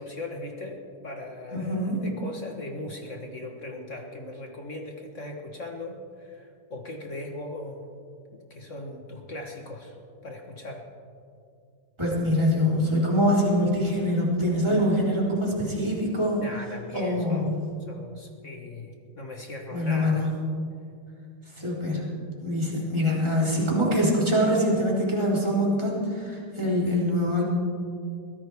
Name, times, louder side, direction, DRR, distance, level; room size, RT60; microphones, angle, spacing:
voice 1, 0.0-7.9 8.5-10.0 10.2-10.8 16.4-20.3, left 2 dB, 40° left, 2 dB, 1.2 m, -39 dB
voice 2, 1.5-2.0 12.0-16.4 16.9-17.7 19.7-20.5 21.6-22.1 22.4-27.4, equal, 10° right, -6 dB, 3.9 m, -24 dB
22.5 x 16.5 x 3.5 m, 2.4 s
omnidirectional pair, 2.4 m